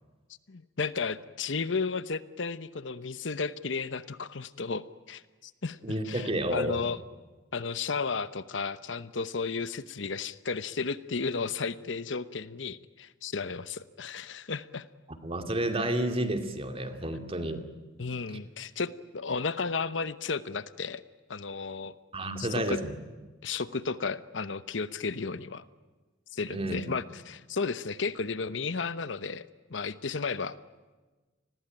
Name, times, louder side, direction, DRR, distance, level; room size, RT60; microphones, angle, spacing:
voice 1, 0.5-5.8 6.0-7.0 7.5-14.9 18.0-21.0 21.3-21.9 22.4-22.8 23.4-25.6 26.3-29.4 29.7-30.6, left 4 dB, 75° left, 14 dB, 0.9 m, -33 dB
voice 2, 5.8-6.9 15.2-17.7 22.1-23.0 26.5-26.8, right 1 dB, 30° right, 6 dB, 2.4 m, -30 dB
29.5 x 20.5 x 9.1 m, 1.3 s
head